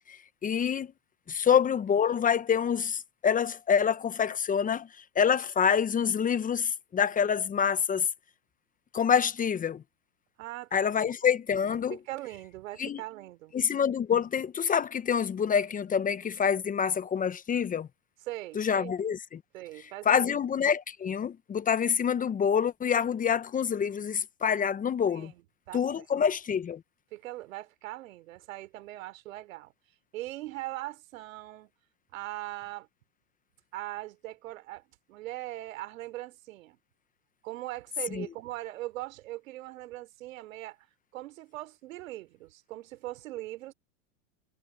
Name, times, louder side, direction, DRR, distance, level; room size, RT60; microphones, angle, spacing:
voice 1, 0.1-0.9 1.3-4.9 5.1-8.1 8.9-9.8 10.7-12.0 12.8-13.0 13.5-17.9 18.6-19.4 20.1-25.3 25.7-26.8 38.1-38.2, left 7 dB, 20° left, 1.0 m, -26 dB
voice 2, 10.4-11.0 11.9-13.5 18.3-18.9 19.5-20.3 25.1-25.4 25.7-26.1 27.1-29.7 30.1-31.7 32.1-32.9 33.7-36.8 37.4-40.8 41.1-43.7, right 17 dB, 70° right, 3.3 m, -40 dB
hypercardioid pair, 110°, 42 cm